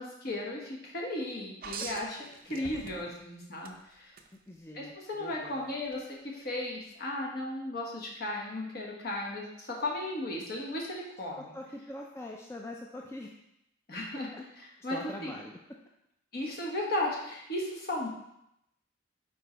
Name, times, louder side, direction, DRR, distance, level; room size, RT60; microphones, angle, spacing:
voice 1, 0.0-4.1 4.7-11.5 13.9-15.3 16.3-18.1, left 1 dB, 55° left, -2 dB, 1.3 m, -35 dB
sound 1, 1.6-3.2 3.6-4.3 5.8-6.0, right 5 dB, 50° right, 0.5 m, -42 dB
voice 2, 2.5-3.1 4.5-4.9 5.2-5.7 11.4-13.3 14.3-14.4 14.9-15.6, left 1 dB, 15° left, 0 dB, 0.4 m, -43 dB
4.9 x 4.4 x 4.5 m, 0.82 s
head